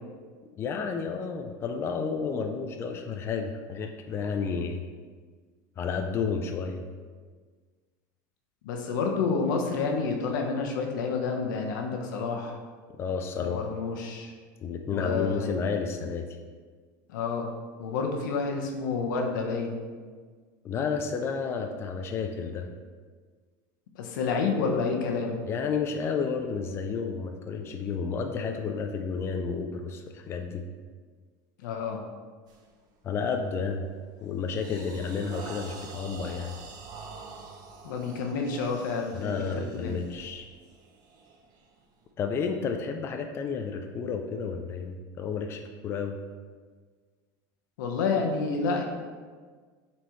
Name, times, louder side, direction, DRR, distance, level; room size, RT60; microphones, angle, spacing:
voice 1, 0.5-4.8 5.8-6.8 13.0-13.6 14.6-16.3 20.6-22.7 25.5-30.6 33.0-33.8 34.2-36.5 39.2-40.5 42.2-46.2, left 5 dB, 25° left, 4 dB, 0.4 m, -31 dB
voice 2, 8.6-12.6 13.4-14.3 14.9-15.5 17.1-17.5 17.8-19.8 23.9-25.4 31.6-32.0 37.8-39.4 39.7-40.0 47.8-48.8, left 4 dB, 90° left, 2 dB, 1.0 m, -29 dB
sound 1, 32.5-32.7 33.2-33.5 33.9-42.0, right 4 dB, 40° right, 0.8 m, -46 dB
7.8 x 4.3 x 3.1 m, 1.5 s
supercardioid pair, 150°, 10 cm